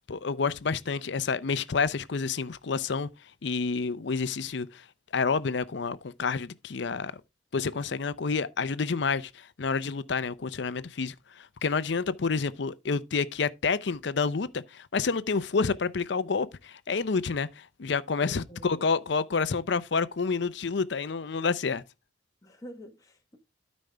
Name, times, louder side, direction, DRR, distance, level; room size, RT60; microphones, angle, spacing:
voice 1, 0.1-3.1 3.4-4.8 5.1-7.2 7.5-21.8, left 4 dB, 60° left, 0.6 m, -29 dB
voice 2, 18.2-18.7 22.4-23.4, left 1 dB, 15° left, 1.1 m, -47 dB
13.0 x 5.2 x 3.3 m
head